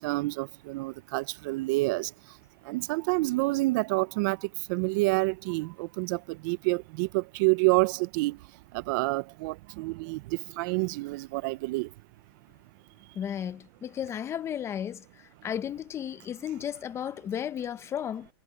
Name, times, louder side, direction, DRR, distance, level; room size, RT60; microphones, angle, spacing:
voice 1, 0.0-2.4 2.6-11.9, right 24 dB, 50° right, 0.6 m, -28 dB
voice 2, 13.2-15.0 15.4-18.3, left 9 dB, 20° left, 0.7 m, -34 dB
supercardioid pair, 145°, 14 cm